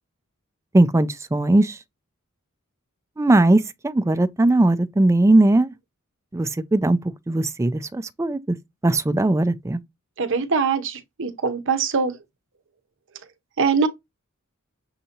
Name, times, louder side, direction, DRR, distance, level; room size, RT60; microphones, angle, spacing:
voice 1, 0.7-1.8 3.2-5.7 6.3-7.0 7.3-8.6 8.8-9.8, right 2 dB, 15° right, 0.3 m, -19 dB
voice 2, 10.2-12.1 13.6-13.9, right 5 dB, 60° right, 0.7 m, -22 dB
6.4 x 2.7 x 2.7 m
head